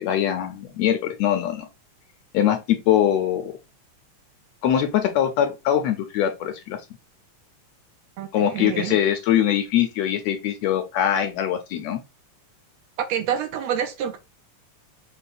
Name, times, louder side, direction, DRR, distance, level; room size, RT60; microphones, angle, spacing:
voice 1, 0.0-1.7 2.3-3.5 4.6-6.8 8.3-12.0, left 10 dB, 75° left, 1.6 m, -22 dB
voice 2, 8.2-9.0 13.1-14.2, right 9 dB, 75° right, 1.7 m, -27 dB
5.3 x 2.3 x 3.9 m
omnidirectional pair, 3.4 m